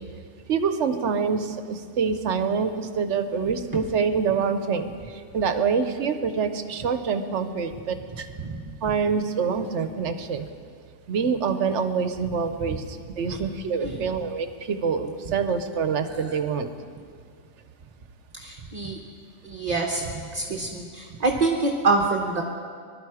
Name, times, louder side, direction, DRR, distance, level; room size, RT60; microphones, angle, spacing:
voice 1, 0.5-4.9 5.3-8.3 8.8-10.5 11.1-16.7, right 6 dB, 65° right, 9 dB, 1.1 m, -26 dB
voice 2, 18.3-19.0 19.4-22.4, right 3 dB, 35° right, 2 dB, 1.0 m, -26 dB
21.0 x 12.0 x 4.9 m, 2.2 s
omnidirectional pair, 1.3 m